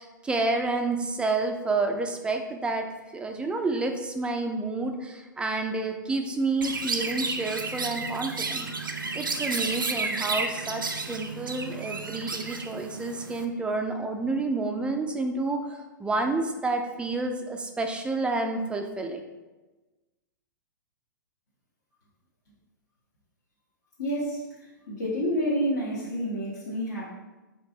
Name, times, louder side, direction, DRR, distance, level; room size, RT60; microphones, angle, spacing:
voice 1, 0.0-2.8 3.1-8.7 9.1-19.2, right 3 dB, 10° right, 4 dB, 0.3 m, -29 dB
Chirp tweet, 6.6-13.4, right 4 dB, 85° right, 0.4 m, -32 dB
voice 2, 24.0-24.4 24.9-27.1, equal, 65° left, -9 dB, 1.2 m, -28 dB
4.4 x 2.6 x 3.9 m, 1.2 s
figure-of-eight pair, 105°, 11 cm